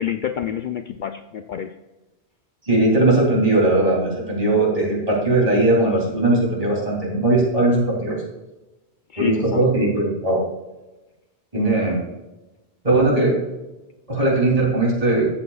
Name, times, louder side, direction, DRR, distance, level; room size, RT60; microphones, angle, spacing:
voice 1, 0.0-1.7 9.1-9.7, left 9 dB, 60° left, 7 dB, 0.6 m, -28 dB
voice 2, 2.6-8.2 9.2-10.5 11.5-12.0 12.8-13.4 14.1-15.3, right 2 dB, 35° right, -4 dB, 3.3 m, -19 dB
14.0 x 8.4 x 2.4 m, 1.1 s
omnidirectional pair, 1.1 m